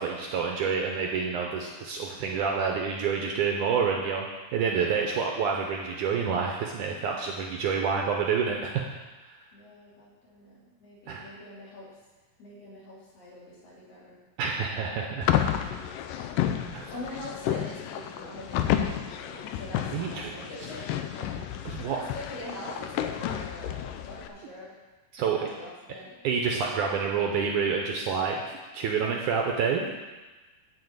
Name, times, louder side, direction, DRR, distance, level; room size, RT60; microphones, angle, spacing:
voice 1, 0.0-4.3 4.5-8.8 11.1-11.3 14.4-15.3 16.7-16.8 19.9-20.5 21.7-22.0 25.1-25.5 26.2-29.9, right 6 dB, 75° right, 0 dB, 2.0 m, -28 dB
voice 2, 4.7-5.2 9.5-11.9 12.4-14.2 15.7-15.8 16.9-21.5 21.9-24.8 25.3-26.1, left 1 dB, 70° left, -6 dB, 4.4 m, -44 dB
sound 1, 15.2-24.3, left 10 dB, 85° left, 2.0 m, -31 dB
11.0 x 4.7 x 8.0 m, 1.2 s
omnidirectional pair, 4.3 m